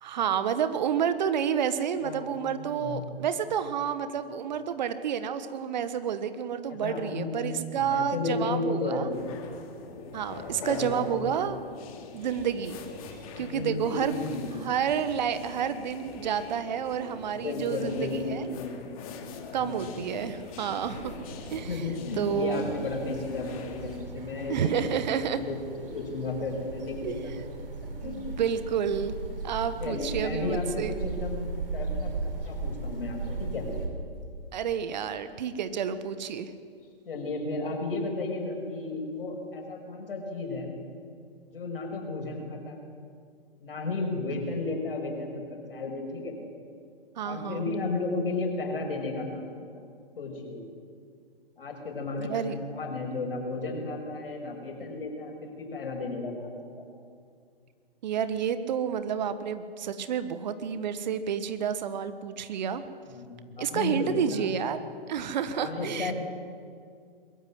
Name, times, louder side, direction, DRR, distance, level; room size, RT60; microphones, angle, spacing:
voice 1, 0.0-9.1 10.1-11.6 12.1-12.8 13.4-14.2 14.6-18.5 19.5-21.1 21.5-21.8 22.2-22.7 24.5-25.4 27.0-27.1 28.0-29.1 29.4-30.9 34.5-36.5 47.2-47.6 52.2-52.6 58.0-62.8 63.6-64.8 65.1-66.1, right 8 dB, 45° right, 12 dB, 1.4 m, -30 dB
voice 2, 2.0-2.3 2.7-3.0 6.8-7.3 7.7-9.3 10.5-11.2 13.4-14.7 17.3-18.7 19.5-19.8 21.7-27.5 28.0-28.3 29.8-33.7 37.0-40.7 41.5-42.8 43.6-46.4 47.2-49.8 50.2-50.6 51.6-56.5 56.8-56.9 63.1-64.5 65.5-66.1, left 3 dB, 65° left, 2 dB, 6.1 m, -33 dB
sound 1, 9.1-24.0, left 5 dB, 35° left, 2.7 m, -42 dB
sound 2, 20.8-33.9, right 3 dB, 65° right, 4.5 m, -37 dB
22.0 x 14.5 x 9.7 m, 2.2 s
figure-of-eight pair, 130°, 30 cm